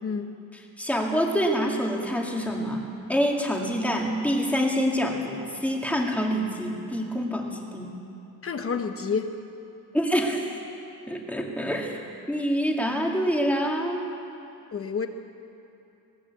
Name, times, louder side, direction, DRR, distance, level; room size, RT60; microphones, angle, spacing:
voice 1, 0.0-0.3 8.4-9.4 14.7-15.1, left 5 dB, 35° left, 6 dB, 1.1 m, -29 dB
voice 2, 0.8-7.9 9.9-10.4 11.1-12.0 12.3-14.1, equal, 5° left, 0 dB, 2.3 m, -26 dB
20.5 x 17.5 x 8.4 m, 2.8 s
cardioid pair, 160°, 40 cm